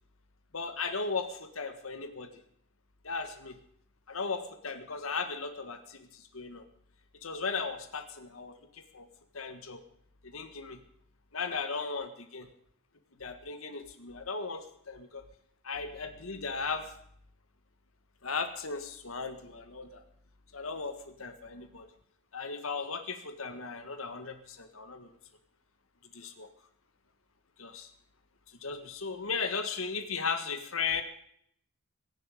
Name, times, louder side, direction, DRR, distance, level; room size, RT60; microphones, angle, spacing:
voice 1, 0.5-2.3 3.0-3.6 4.1-6.6 7.2-9.1 9.3-9.8 10.2-10.8 11.3-12.5 13.2-15.2 15.6-16.9 18.2-20.0 20.5-21.9 22.3-25.1 26.1-26.5 27.6-27.9 28.6-31.0, left 5 dB, 90° left, 8 dB, 1.6 m, -36 dB
23.5 x 11.0 x 5.0 m, 0.68 s
head